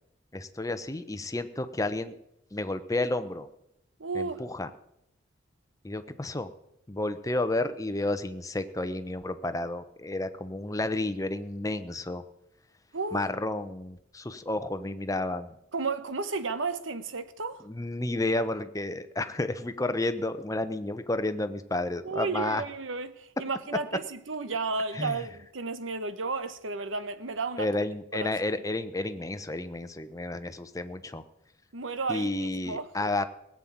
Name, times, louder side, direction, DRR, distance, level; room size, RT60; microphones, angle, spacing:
voice 1, 0.3-2.2 2.5-3.5 4.1-4.7 5.8-6.5 6.9-12.2 13.1-15.6 17.6-22.6 24.9-25.2 27.6-31.2 32.1-33.3, left 2 dB, 15° left, 0.9 m, -31 dB
voice 2, 4.0-4.4 12.9-13.3 15.7-17.7 22.0-27.7 28.1-28.3 31.7-32.9, right 4 dB, 90° right, 1.2 m, -33 dB
18.0 x 7.6 x 8.8 m
head